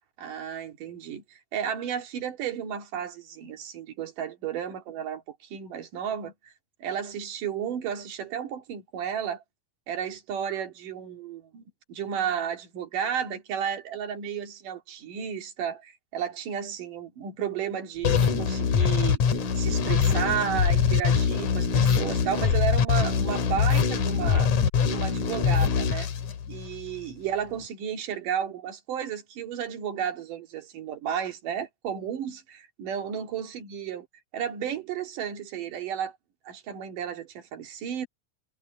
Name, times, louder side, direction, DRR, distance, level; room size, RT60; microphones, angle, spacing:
voice 1, 0.2-6.5 6.8-9.4 9.9-19.2 19.6-24.5 24.9-26.1 26.5-34.1 34.3-36.1 36.5-38.1, right 8 dB, 75° right, 3.8 m, -33 dB
sound 1, 18.0-26.9, left 6 dB, 65° left, 3.2 m, -23 dB
omnidirectional pair, 3.8 m